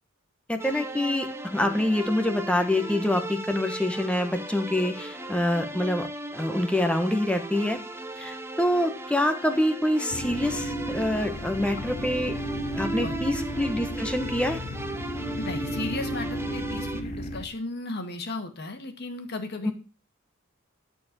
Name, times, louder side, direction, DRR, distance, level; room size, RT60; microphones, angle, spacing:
voice 1, 0.5-6.1 6.3-7.8 8.2-12.3 12.8-14.6 19.6-19.7, left 1 dB, 5° left, 5 dB, 1.1 m, -26 dB
sound 1, 0.6-17.0, right 1 dB, 10° right, 0.7 m, -37 dB
sound 2, 10.1-17.4, equal, 35° left, 1.0 m, -33 dB
voice 2, 15.4-19.7, left 2 dB, 50° left, 6 dB, 1.7 m, -35 dB
12.0 x 4.5 x 7.4 m, 0.35 s
head